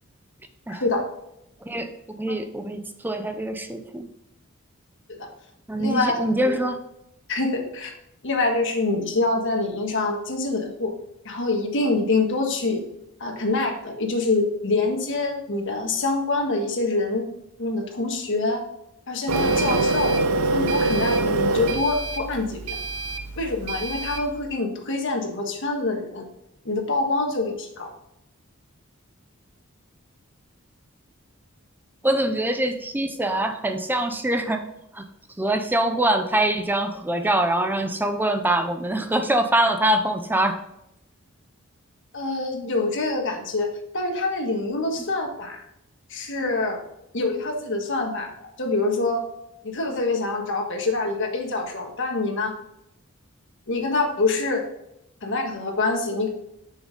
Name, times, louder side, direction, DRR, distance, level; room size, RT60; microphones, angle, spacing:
voice 1, 1.6-4.1 5.7-6.8 32.0-34.7 34.9-35.0 35.4-40.6, right 1 dB, 10° right, 6 dB, 0.5 m, -24 dB
voice 2, 5.8-6.6 7.3-7.9 8.2-10.9 11.2-12.8 13.2-17.2 17.6-18.6 19.1-20.2 20.5-22.7 23.4-26.3 26.6-27.9 42.1-45.6 46.1-46.8 47.1-49.2 49.6-52.6 53.7-54.6 55.2-56.3, left 3 dB, 60° left, 2 dB, 1.5 m, -25 dB
Printer, 19.3-24.3, right 3 dB, 90° right, 0.6 m, -24 dB
6.7 x 6.3 x 3.8 m, 0.81 s
head